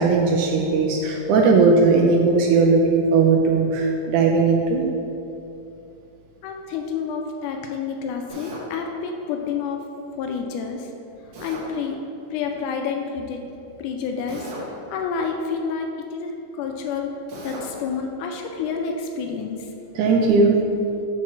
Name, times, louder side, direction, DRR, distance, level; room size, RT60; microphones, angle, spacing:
voice 1, 0.0-4.9 20.0-20.6, right 4 dB, 80° right, 0 dB, 1.9 m, -18 dB
voice 2, 6.4-9.8 10.1-10.9 11.4-12.0 12.3-13.5 13.8-14.5 14.9-17.1 17.4-19.7, left 5 dB, 80° left, 3 dB, 1.9 m, -29 dB
Drill, 8.3-8.7 11.3-11.7 14.3-14.7 17.3-17.7, right 1 dB, 60° right, 1.4 m, -37 dB
5.7 x 4.5 x 6.0 m, 2.7 s
omnidirectional pair, 3.8 m